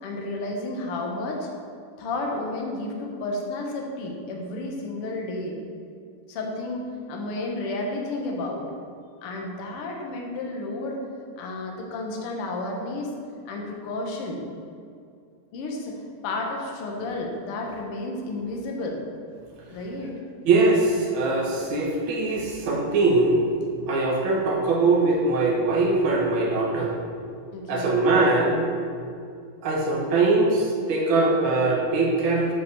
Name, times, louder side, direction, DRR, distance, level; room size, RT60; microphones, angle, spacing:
voice 1, 0.0-1.5 2.0-5.6 6.3-8.7 9.2-11.0 11.4-13.1 13.4-14.4 15.5-19.0 19.7-20.1 27.5-28.0, left 2 dB, 80° left, 0 dB, 1.2 m, -32 dB
voice 2, 20.4-23.4 23.9-26.9 27.7-28.7 29.6-32.5, right 3 dB, 85° right, -2 dB, 1.1 m, -22 dB
9.0 x 5.6 x 6.8 m, 2.4 s
omnidirectional pair, 4.4 m